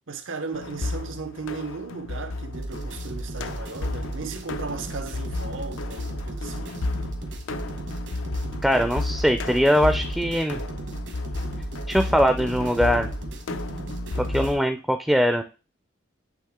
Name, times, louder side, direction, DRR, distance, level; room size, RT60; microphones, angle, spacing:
voice 1, 0.1-6.8, right 4 dB, 85° right, 0.8 m, -36 dB
sound 1, 0.5-14.6, left 2 dB, 90° left, 0.5 m, -33 dB
sound 2, 2.5-14.5, right 2 dB, 65° right, 1.1 m, -35 dB
voice 2, 8.6-10.6 11.9-13.1 14.3-15.4, equal, ahead, 0.4 m, -21 dB
8.4 x 3.2 x 3.6 m
head